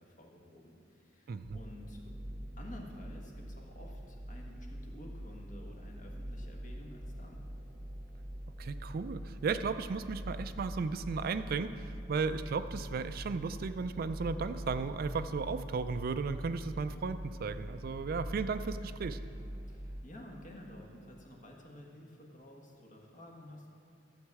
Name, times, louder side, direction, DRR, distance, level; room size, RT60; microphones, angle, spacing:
voice 1, 0.0-2.1 2.6-7.4 19.7-23.7, left 1 dB, 45° left, 0 dB, 1.5 m, -51 dB
sound 1, 1.4-20.0, equal, 15° right, 1.0 m, -44 dB
voice 2, 8.6-19.2, right 4 dB, 50° right, 11 dB, 0.4 m, -35 dB
13.5 x 7.3 x 4.7 m, 2.5 s
head